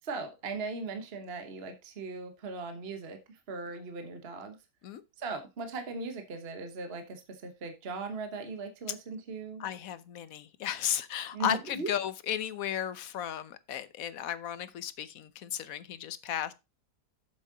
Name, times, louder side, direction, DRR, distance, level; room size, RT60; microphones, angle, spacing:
voice 1, 0.1-4.6 5.2-9.6 11.3-11.9, right 3 dB, 40° right, 1.3 m, -39 dB
voice 2, 9.6-16.5, left 10 dB, 60° left, 1.1 m, -34 dB
7.6 x 7.5 x 3.9 m
omnidirectional pair, 1.8 m